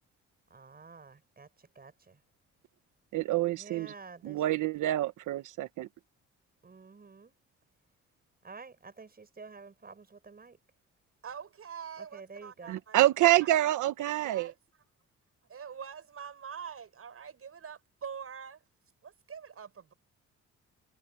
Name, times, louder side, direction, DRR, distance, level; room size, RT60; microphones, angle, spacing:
voice 1, 0.5-1.5 1.7-2.2 3.5-4.4 6.6-7.3 8.4-10.6 12.0-12.8, right 4 dB, 30° right, 6.4 m, -50 dB
voice 2, 3.1-3.9 4.2-5.9 12.7-14.5, right 14 dB, 80° right, 1.3 m, -27 dB
voice 3, 11.2-13.0 14.2-14.6 15.5-18.6 19.0-19.9, right 7 dB, 50° right, 7.1 m, -44 dB
cardioid pair, 90°, 30 cm